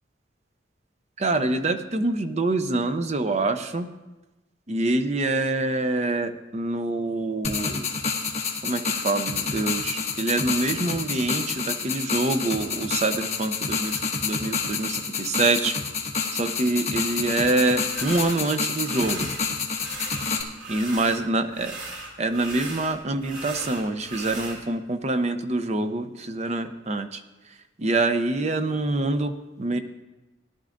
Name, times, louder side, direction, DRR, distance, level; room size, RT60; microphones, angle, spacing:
voice 1, 1.2-3.9 4.7-7.9 8.6-15.7 16.3-19.3 20.7-21.8 22.2-27.2 27.8-29.8, right 2 dB, 40° right, 9 dB, 0.6 m, -25 dB
sound 1, 7.4-20.4, left 5 dB, 40° left, 1.4 m, -29 dB
sound 2, 17.9-18.4 18.8-19.4 19.7-21.2 21.5-24.6, right 2 dB, 85° right, 2.9 m, -37 dB
18.0 x 11.5 x 2.6 m, 1.1 s
head